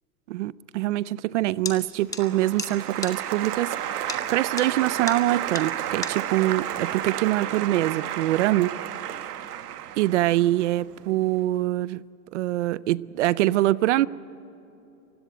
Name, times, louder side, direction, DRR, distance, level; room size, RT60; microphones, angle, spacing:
voice 1, 0.3-8.7 10.0-12.0 12.3-14.1, right 15 dB, 50° right, 20 dB, 0.5 m, -24 dB
sound 1, 1.7-1.8 2.1-2.2 2.6-2.7 3.0-3.1 4.1-4.2 4.6-4.7 5.1-5.2 5.6-5.7 6.0-6.1, left 5 dB, 10° left, 0.8 m, -32 dB
Applause, 2.1-11.2, right 11 dB, 85° right, 1.4 m, -32 dB
28.5 x 16.0 x 9.2 m, 2.9 s
supercardioid pair, 165°, 45 cm